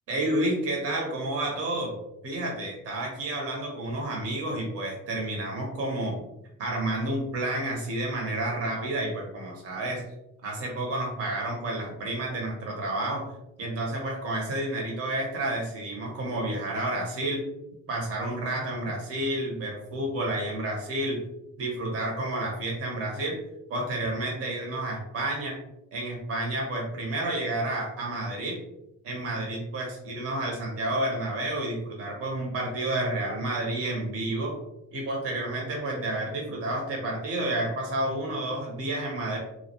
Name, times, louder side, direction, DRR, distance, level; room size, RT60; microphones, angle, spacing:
voice 1, 0.1-1.9 2.2-6.2 6.6-10.0 10.4-13.3 13.6-17.4 17.9-21.2 21.6-23.4 23.7-25.6 25.9-28.6 29.0-34.6 34.9-39.4, right 1 dB, 50° right, -1 dB, 0.7 m, -30 dB
2.3 x 2.1 x 2.7 m, 0.86 s
cardioid pair, 90°, 30 cm